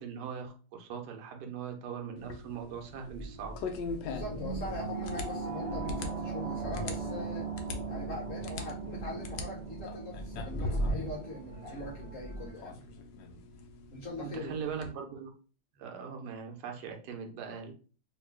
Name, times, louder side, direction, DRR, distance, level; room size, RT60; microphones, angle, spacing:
voice 1, 0.0-3.6 14.2-15.3 15.8-17.7, right 6 dB, 75° right, 3 dB, 1.2 m, -40 dB
sound 1, 2.2-14.9, left 3 dB, 85° left, 1.3 m, -43 dB
sound 2, 3.1-12.5, right 2 dB, 30° right, 0.6 m, -37 dB
voice 2, 4.0-7.5 7.8-12.8 13.9-14.6, left 1 dB, 55° left, -3 dB, 1.1 m, -42 dB
3.0 x 2.8 x 3.2 m, 0.38 s
omnidirectional pair, 1.9 m